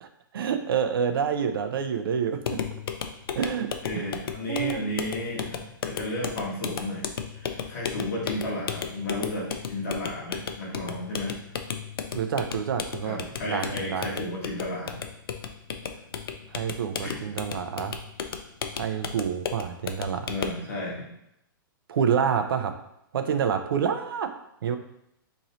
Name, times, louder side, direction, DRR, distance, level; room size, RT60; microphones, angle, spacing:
voice 1, 0.3-2.4 3.4-3.7 3.9-4.1 4.5-4.9 12.1-14.2 16.5-18.0 18.8-20.3 21.9-22.7 23.1-24.3 24.6-24.8, right 7 dB, 80° right, 8 dB, 0.5 m, -27 dB
sound 1, 2.4-20.7, left 7 dB, 85° left, 0.4 m, -35 dB
voice 2, 3.8-7.0 7.3-11.3 13.0-15.0 17.0-17.1 20.3-21.1, left 1 dB, 40° left, -4 dB, 1.2 m, -33 dB
3.0 x 2.7 x 3.9 m, 0.77 s
hypercardioid pair, 175°, 12 cm